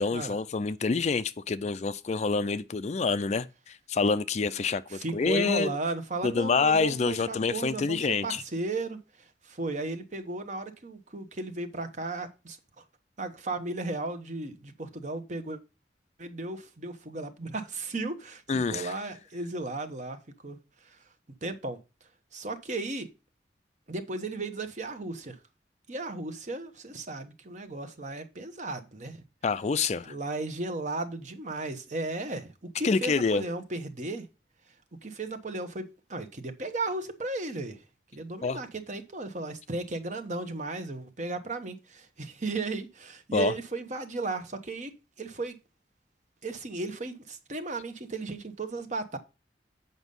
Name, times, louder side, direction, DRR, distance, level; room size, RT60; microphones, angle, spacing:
voice 1, 0.0-5.7 6.2-8.4 18.5-18.9 29.4-30.1 32.8-33.4 38.4-38.6 43.3-43.5, left 4 dB, 40° left, 0.4 m, -27 dB
voice 2, 4.9-9.0 9.4-12.6 13.2-15.6 16.2-18.4 18.7-20.6 21.4-21.8 22.3-23.1 23.9-25.4 25.9-29.2 30.1-34.3 35.0-35.8 36.1-37.8 38.1-44.9 45.2-45.6 46.4-49.2, right 2 dB, 45° right, 1.1 m, -35 dB
8.0 x 5.4 x 5.3 m
head